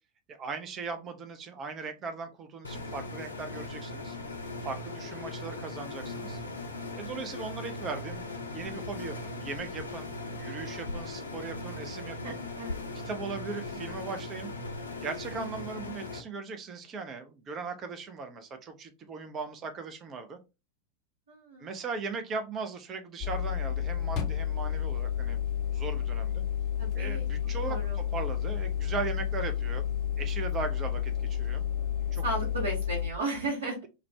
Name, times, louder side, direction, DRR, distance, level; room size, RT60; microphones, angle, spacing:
voice 1, 0.3-4.1 4.6-6.4 7.0-8.3 8.5-10.1 10.4-12.4 13.0-14.5 15.0-20.4 21.6-25.4 25.7-26.4 26.9-29.9 30.2-31.7 32.1-32.2, right 4 dB, 30° right, 7 dB, 0.5 m, -38 dB
sound 1, 2.6-16.2, left 2 dB, 75° left, 0.5 m, -39 dB
voice 2, 12.2-12.8 21.3-21.6 26.8-27.3 27.6-28.0 32.2-33.8, right 2 dB, 70° right, -5 dB, 1.0 m, -34 dB
sound 2, 23.2-33.1, left 9 dB, 35° left, 0.6 m, -31 dB
2.4 x 2.1 x 3.3 m, 0.27 s
figure-of-eight pair, 90°, 0 cm